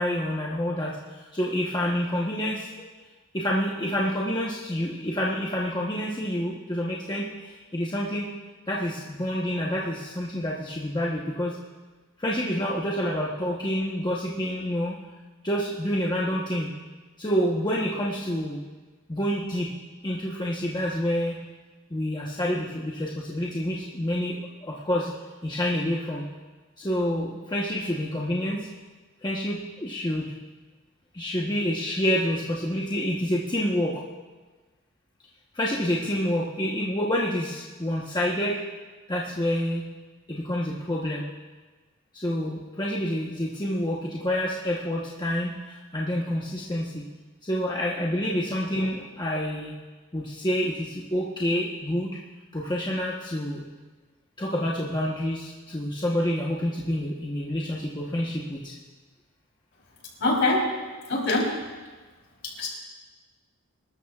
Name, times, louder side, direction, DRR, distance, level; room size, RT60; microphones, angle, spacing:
voice 1, 0.0-2.9 3.3-8.3 8.7-11.6 12.2-15.0 15.4-16.7 17.2-18.6 19.1-19.7 20.0-21.4 21.9-25.1 25.4-26.2 26.8-28.7 29.2-30.3 31.1-34.0 35.5-38.6 39.1-39.9 40.3-41.2 42.1-47.0 47.4-49.7 50.1-52.2 52.5-53.6 54.4-58.7, equal, 20° left, -4 dB, 1.0 m, -28 dB
voice 2, 60.2-60.7 61.1-61.5 62.6-62.7, left 2 dB, 55° left, -2 dB, 3.6 m, -23 dB
25.0 x 13.0 x 2.4 m, 1.3 s
head